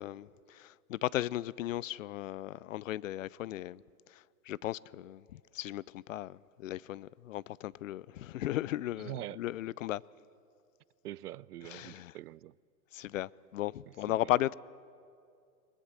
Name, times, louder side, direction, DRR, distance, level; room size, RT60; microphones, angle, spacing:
voice 1, 0.0-3.8 4.1-10.0 11.7-12.1 12.9-14.5, left 14 dB, 55° left, 0.5 m, -36 dB
voice 2, 9.0-9.4 11.0-12.6 13.9-14.3, right 14 dB, 70° right, 0.6 m, -44 dB
22.5 x 20.0 x 7.5 m
hypercardioid pair, 140°, 49 cm